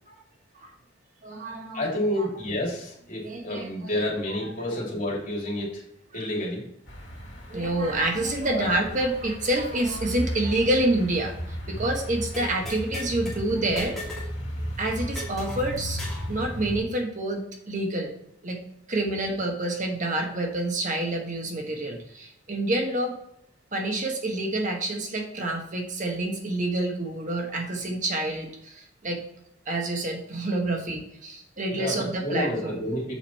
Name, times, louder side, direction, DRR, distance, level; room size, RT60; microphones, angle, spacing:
voice 1, 1.2-2.3 3.2-3.9 4.7-4.8 7.5-14.0 14.8-16.0 16.3-18.1 18.4-18.6 18.9-23.1 23.7-29.2 29.7-32.8, right 1 dB, 40° right, 1 dB, 1.2 m, -28 dB
voice 2, 1.7-5.8 6.1-6.6 8.5-8.7 31.7-33.1, left 1 dB, 45° left, -3 dB, 2.7 m, -29 dB
sound 1, 6.9-16.8, equal, 70° left, 2.2 m, -35 dB
sound 2, 12.3-13.4 13.8-14.3 14.6-14.7 15.1-16.3, left 1 dB, ahead, 2.8 m, -38 dB
7.3 x 5.2 x 4.2 m, 0.75 s
head